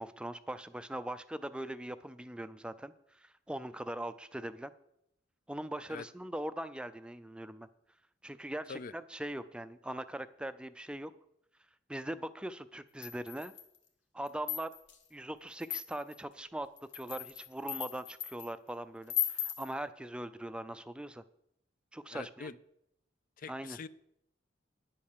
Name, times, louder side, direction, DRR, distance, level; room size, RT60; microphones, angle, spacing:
voice 1, 0.0-4.7 5.5-7.7 8.2-11.1 11.9-13.5 14.1-14.7 15.1-16.7 16.9-21.2 21.9-22.6 23.5-23.8, right 1 dB, 5° right, 13 dB, 0.4 m, -41 dB
sound 1, 13.0-13.8 14.3-15.0 15.6-16.2 16.8-18.5 19.1-19.7, left 11 dB, 90° left, 1.6 m, -37 dB
voice 2, 22.1-22.5 23.4-23.9, left 5 dB, 50° left, 15 dB, 0.4 m, -43 dB
10.0 x 8.6 x 6.7 m, 0.76 s
head